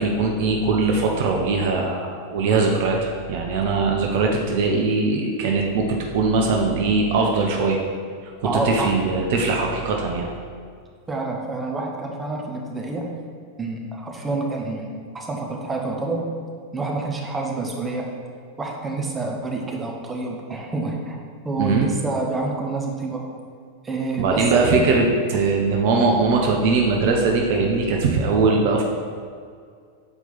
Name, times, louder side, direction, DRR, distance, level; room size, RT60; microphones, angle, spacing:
voice 1, 0.0-7.8 8.4-10.3 21.6-21.9 24.2-28.8, right 3 dB, 50° right, 1 dB, 0.7 m, -21 dB
voice 2, 8.4-8.9 11.1-13.1 13.6-16.2 16.7-18.1 18.6-21.2 21.4-23.2 23.8-24.7, right 3 dB, 15° right, 0 dB, 1.0 m, -27 dB
6.9 x 4.5 x 4.1 m, 2.1 s
figure-of-eight pair, 90°, 0 cm